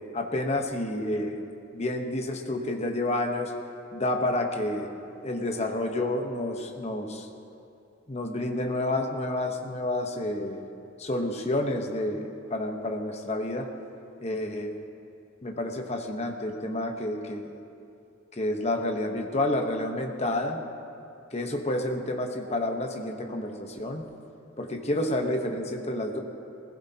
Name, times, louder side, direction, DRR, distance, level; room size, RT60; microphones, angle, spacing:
voice 1, 0.1-1.4 1.7-3.5 3.9-4.9 5.2-7.3 8.1-10.6 11.0-13.7 14.2-14.8 15.4-17.5 18.3-20.6 21.3-24.0 24.6-26.2, left 1 dB, 30° left, 3 dB, 1.0 m, -29 dB
20.5 x 15.5 x 2.9 m, 2.6 s
head